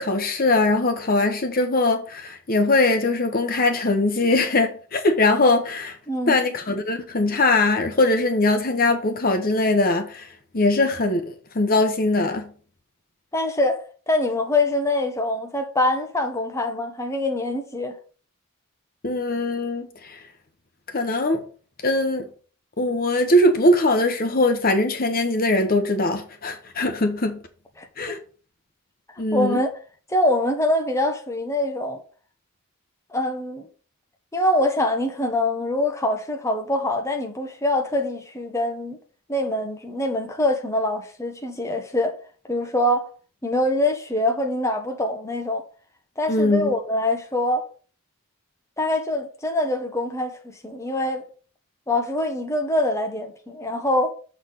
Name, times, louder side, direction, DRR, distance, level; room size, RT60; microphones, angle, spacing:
voice 1, 0.0-6.0 6.3-10.3 10.5-12.4 19.0-20.2 20.9-21.4 21.8-22.3 22.8-27.4 28.0-28.2 29.2-29.6 46.3-46.7, left 2 dB, 45° left, 1.0 m, -21 dB
voice 2, 6.1-6.4 13.3-18.0 27.8-27.9 29.3-29.7 30.1-32.0 33.1-33.7 34.3-39.0 39.3-42.1 42.5-43.1 43.4-45.6 46.2-47.7 48.8-51.2 51.9-54.1, left 1 dB, 15° left, 1.0 m, -24 dB
7.1 x 4.1 x 6.6 m
head